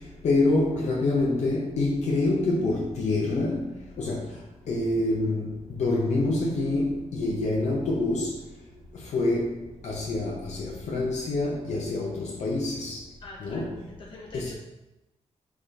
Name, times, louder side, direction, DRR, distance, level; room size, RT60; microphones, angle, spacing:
voice 1, 0.2-3.7 4.0-4.2 4.7-8.3 9.0-9.5 9.8-13.0 13.4-13.7 14.3-14.5, left 2 dB, 75° left, -3 dB, 0.7 m, -26 dB
voice 2, 13.2-14.5, left 2 dB, 45° left, -2 dB, 1.1 m, -45 dB
4.0 x 3.6 x 3.2 m, 0.98 s
wide cardioid pair, 145°, 12 cm